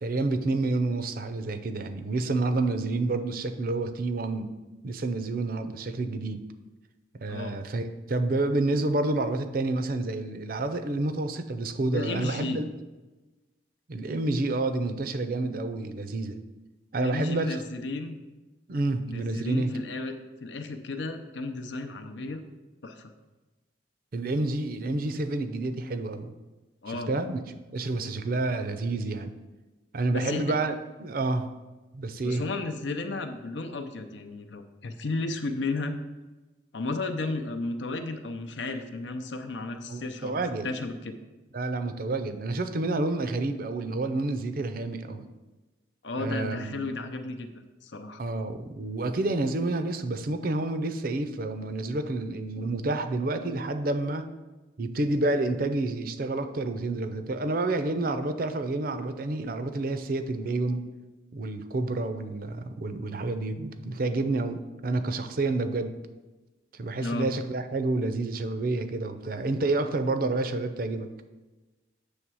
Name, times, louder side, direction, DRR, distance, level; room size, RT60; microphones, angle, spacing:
voice 1, 0.0-4.5 4.8-6.4 7.2-12.6 13.9-16.4 16.9-17.6 18.7-19.7 24.1-26.3 26.9-27.4 27.7-29.3 29.9-30.7 31.0-31.5 31.9-32.4 39.9-40.7 41.5-45.3 46.2-46.8 48.2-54.3 54.8-60.8 61.3-65.9 66.7-71.1, right 2 dB, 50° right, 9 dB, 0.5 m, -29 dB
voice 2, 11.9-12.6 17.0-18.2 19.1-20.1 20.4-22.4 22.8-23.1 26.8-27.1 30.1-30.6 32.2-36.0 36.7-40.4 40.6-41.2 46.0-47.5 47.8-48.2 67.0-67.3, left 2 dB, 70° left, 7 dB, 0.6 m, -33 dB
8.0 x 3.3 x 6.2 m, 1.2 s
head